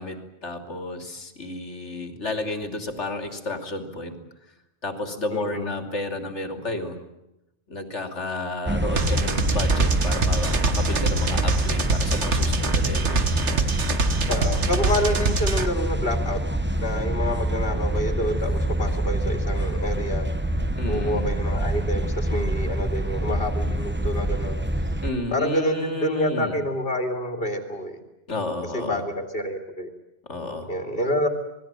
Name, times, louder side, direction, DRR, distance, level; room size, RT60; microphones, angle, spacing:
voice 1, 0.0-4.2 4.8-7.0 7.7-13.3 20.8-21.3 25.0-26.6 28.3-29.0 30.2-30.7, left 2 dB, 75° left, 6 dB, 3.3 m, -31 dB
voice 2, 5.3-5.7 14.3-16.4 16.8-20.3 20.9-24.6 25.3-28.0 28.7-29.9 30.7-31.3, left 1 dB, 50° left, 4 dB, 2.7 m, -28 dB
sound 1, 8.7-25.1, right 1 dB, 10° right, 1.0 m, -26 dB
sound 2, 9.0-15.7, right 3 dB, 75° right, 1.8 m, -25 dB
27.0 x 20.0 x 9.0 m, 0.91 s
omnidirectional pair, 1.2 m